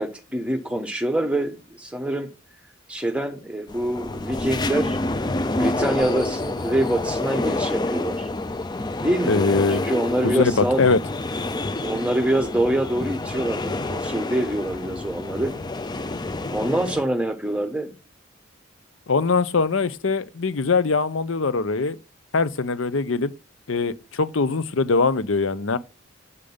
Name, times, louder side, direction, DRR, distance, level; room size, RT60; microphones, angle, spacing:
voice 1, 0.0-2.3 2.9-5.0 5.6-8.3 9.0-11.0 11.8-15.6 16.5-17.9, right 1 dB, 5° right, 1.1 m, -25 dB
sound 1, 3.7-17.0, left 2 dB, 20° left, 0.5 m, -28 dB
voice 2, 9.3-9.9 10.2-11.0 19.1-22.0 22.3-23.3 23.7-25.8, left 4 dB, 70° left, 0.7 m, -22 dB
8.2 x 5.1 x 5.4 m
head